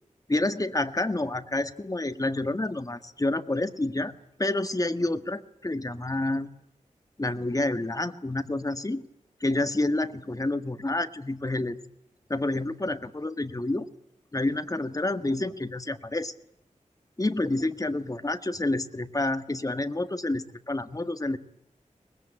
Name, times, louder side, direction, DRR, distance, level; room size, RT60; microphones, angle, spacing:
voice 1, 0.3-4.1 4.4-6.5 7.2-9.0 9.4-11.8 12.3-13.9 14.3-16.3 17.2-21.4, left 2 dB, 25° left, 10 dB, 1.6 m, -28 dB
24.0 x 20.5 x 9.9 m, 0.79 s
wide cardioid pair, 75°, 13 cm